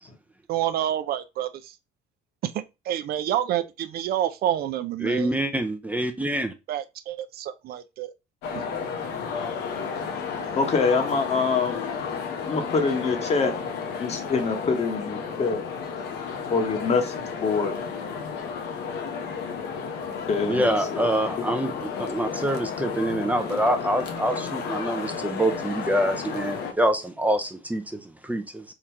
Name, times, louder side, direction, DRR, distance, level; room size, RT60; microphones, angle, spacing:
voice 1, 0.5-1.5 2.9-5.3 6.7-8.1 10.5-10.6, right 11 dB, 65° right, 0.5 m, -28 dB
voice 2, 5.0-6.5 20.5-28.6, right 1 dB, 10° right, 0.6 m, -26 dB
sound 1, 8.4-26.7, left 6 dB, 90° left, 0.9 m, -32 dB
voice 3, 10.5-11.8 12.5-13.6 14.0-15.6 16.5-17.1 17.4-17.8 20.3-20.6 20.9-21.1, left 4 dB, 40° left, 1.2 m, -24 dB
3.8 x 2.9 x 4.5 m
cardioid pair, 110°, 17 cm